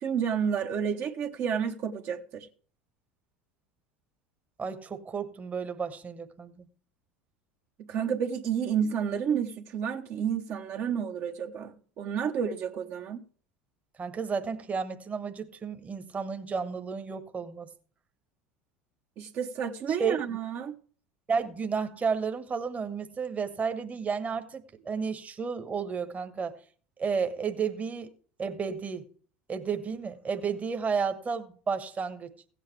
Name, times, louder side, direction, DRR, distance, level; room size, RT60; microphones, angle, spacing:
voice 1, 0.0-2.5 7.8-13.2 19.2-20.7, right 7 dB, 50° right, 1.1 m, -30 dB
voice 2, 4.6-6.6 14.0-17.7 19.9-20.2 21.3-26.6 27.0-28.1 28.4-29.1 29.5-32.3, right 5 dB, 25° right, 1.2 m, -32 dB
16.0 x 8.1 x 3.3 m
hypercardioid pair, 75°, 6 cm